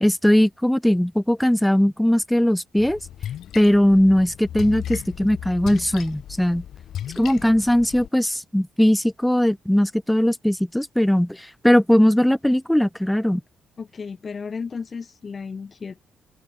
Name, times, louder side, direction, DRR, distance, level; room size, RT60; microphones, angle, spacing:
voice 1, 0.0-3.0 3.6-6.6 7.2-13.4, equal, 5° left, 0.4 m, -19 dB
Splash splatter, 2.8-8.1, left 10 dB, 70° left, 3.9 m, -36 dB
voice 2, 13.8-16.1, left 5 dB, 45° left, 8.0 m, -34 dB
supercardioid pair, 60°, 0 cm